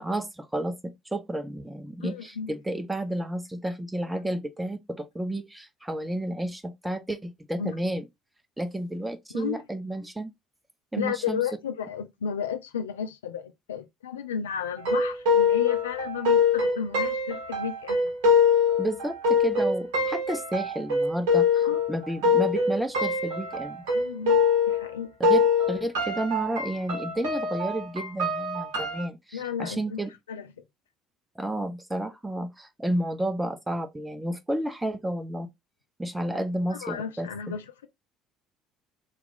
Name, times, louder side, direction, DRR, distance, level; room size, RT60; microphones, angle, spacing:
voice 1, 0.0-8.1 8.6-10.3 10.9-11.4 18.8-23.8 25.2-30.1 31.4-35.5 36.0-37.3, right 1 dB, 10° right, 0.6 m, -31 dB
voice 2, 2.0-2.5 7.6-7.7 9.3-9.6 11.0-18.1 21.6-21.8 23.9-25.1 29.3-30.0 30.3-30.5 36.7-37.9, left 7 dB, 75° left, 0.4 m, -33 dB
sound 1, 14.8-24.9 25.2-29.1, left 4 dB, 65° right, 1.0 m, -24 dB
3.0 x 2.4 x 3.7 m
figure-of-eight pair, 55°, 0 cm